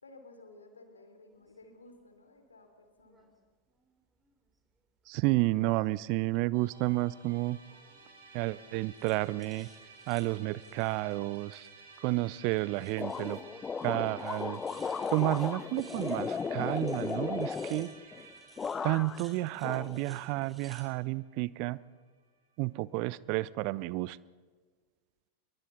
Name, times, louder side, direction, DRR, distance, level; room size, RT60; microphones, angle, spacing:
voice 1, 0.0-3.3, left 2 dB, 75° left, 6 dB, 3.3 m, -55 dB
sound 1, 1.3-1.5 3.0-3.3 3.7-4.6 5.0-6.0 7.7-8.1 8.9-12.0 12.3-13.5 13.8-13.9 14.2-20.9, right 3 dB, 15° right, 3.2 m, -60 dB
voice 2, 5.1-7.6 8.3-9.7 10.1-11.7 12.0-13.4 13.8-14.6 15.1-17.9 18.8-21.8 22.6-24.2, right 20 dB, 45° right, 21 dB, 0.5 m, -31 dB
Musical instrument, 6.5-21.7, right 4 dB, 65° right, 6.6 m, -55 dB
sound 2, 13.0-18.3 18.6-19.3 19.6-20.5, left 5 dB, 20° left, 0.7 m, -36 dB
27.0 x 23.0 x 4.2 m, 1.5 s
figure-of-eight pair, 90°, 0 cm